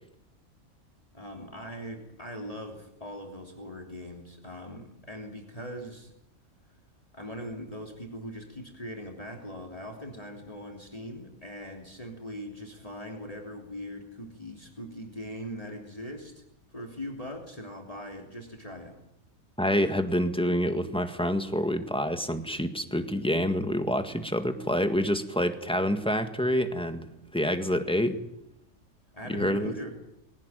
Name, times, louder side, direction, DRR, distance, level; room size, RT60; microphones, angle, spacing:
voice 1, 1.1-6.1 7.1-16.4 16.7-19.0 29.1-29.9, equal, 25° left, 2 dB, 3.2 m, -40 dB
voice 2, 19.6-27.1 27.3-28.2 29.3-29.7, equal, 5° left, 8 dB, 1.7 m, -27 dB
21.5 x 18.5 x 9.2 m, 0.78 s
omnidirectional pair, 1.5 m